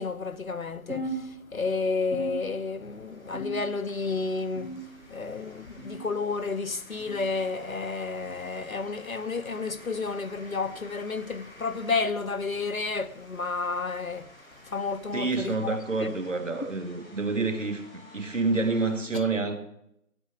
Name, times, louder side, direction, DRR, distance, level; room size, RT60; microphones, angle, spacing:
voice 1, 0.0-4.7 5.1-14.3 14.7-16.1, left 4 dB, 90° left, 0.9 m, -31 dB
sound 1, 0.9-1.7 2.1-2.9 3.3-3.9 4.5-5.2 5.8-6.1 7.0-7.2 8.2-8.4 9.4-9.6 10.6-10.8 11.9-12.1 13.1-13.3 14.3-14.4 15.5-15.6, right 2 dB, ahead, 1.1 m, -39 dB
sound 2, 2.3-19.0, left 1 dB, 30° left, 5.7 m, -53 dB
voice 2, 15.1-19.6, right 3 dB, 65° right, 1.8 m, -28 dB
15.5 x 6.9 x 6.1 m
figure-of-eight pair, 155°, 41 cm